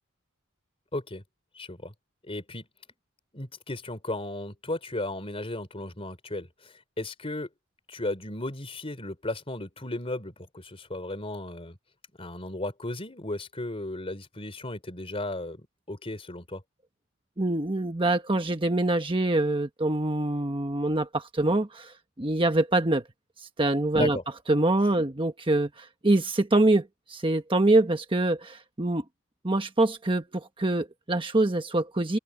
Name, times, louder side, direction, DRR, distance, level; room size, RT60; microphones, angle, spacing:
voice 1, 0.9-1.2 1.5-1.9 2.2-2.7 3.3-7.5 7.9-11.8 12.2-16.6 23.9-24.2, left 2 dB, 25° left, 3.7 m, -35 dB
voice 2, 17.4-23.0 23.4-24.2 24.5-29.0 29.4-32.2, right 2 dB, 25° right, 1.2 m, -25 dB
open air
head